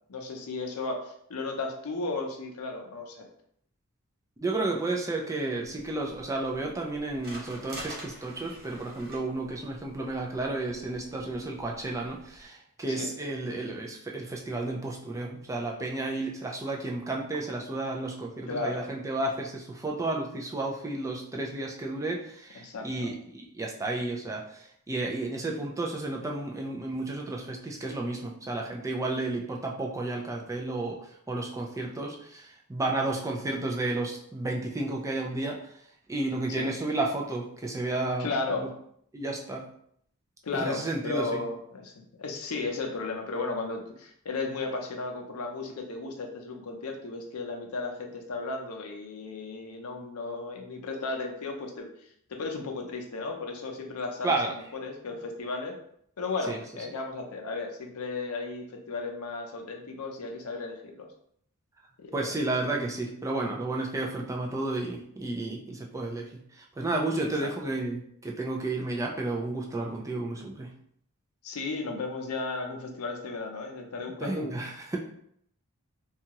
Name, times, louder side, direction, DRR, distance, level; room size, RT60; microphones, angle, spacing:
voice 1, 0.1-3.3 12.9-13.1 18.5-18.8 22.6-23.1 36.5-36.7 38.2-38.7 40.4-41.9 42.2-51.9 52.3-55.7 56.2-61.1 62.0-62.3 71.4-74.5, left 3 dB, 75° left, 2 dB, 0.6 m, -34 dB
voice 2, 4.4-35.7 36.1-38.3 38.6-38.7 39.1-39.7 40.5-41.4 54.2-54.5 56.5-56.6 62.1-70.7 74.2-75.0, right 2 dB, 15° right, -1 dB, 0.4 m, -32 dB
sound 1, 5.6-12.4, right 1 dB, 45° right, 0.8 m, -48 dB
2.7 x 2.3 x 2.9 m, 0.68 s
head